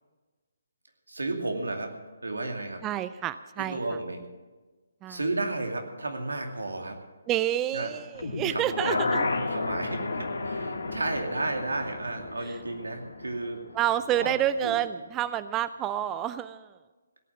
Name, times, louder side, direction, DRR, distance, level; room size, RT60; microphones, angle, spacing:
voice 1, 1.1-2.0 2.2-2.8 3.6-4.2 5.1-7.0 7.7-7.9 8.5-9.1 9.5-13.6 14.1-14.3 14.6-14.8, right 2 dB, 85° right, 4 dB, 2.5 m, -33 dB
voice 2, 2.8-3.8 5.0-5.2 7.3-9.3 13.7-16.7, right 11 dB, 15° right, 14 dB, 0.3 m, -28 dB
sound 1, 8.1-14.2 14.5-14.6, left 3 dB, 75° left, 2.3 m, -32 dB
17.0 x 9.1 x 7.4 m, 1.3 s
figure-of-eight pair, 145°, 0 cm